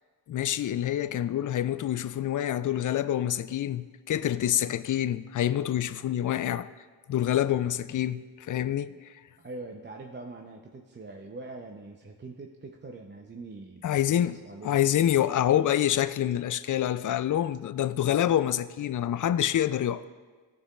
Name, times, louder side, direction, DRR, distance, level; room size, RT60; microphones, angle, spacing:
voice 1, 0.3-6.7 7.1-8.9 13.8-14.4 14.6-20.0, left 11 dB, 45° left, 0.4 m, -26 dB
voice 2, 9.4-15.0, right 2 dB, 25° right, 0.6 m, -43 dB
13.5 x 4.6 x 2.4 m
supercardioid pair, 45°, 43 cm